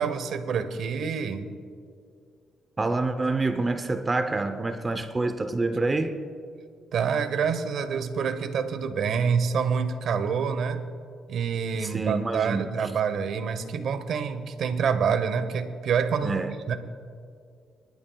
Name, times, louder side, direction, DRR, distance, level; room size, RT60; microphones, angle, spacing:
voice 1, 0.0-1.5 6.9-10.8 11.3-16.8, right 6 dB, 70° right, 10 dB, 1.0 m, -27 dB
voice 2, 2.8-6.2 11.8-13.0 16.2-16.5, right 3 dB, 25° right, 9 dB, 0.7 m, -27 dB
24.5 x 11.5 x 2.3 m, 2.3 s
cardioid pair, 90°, 0 cm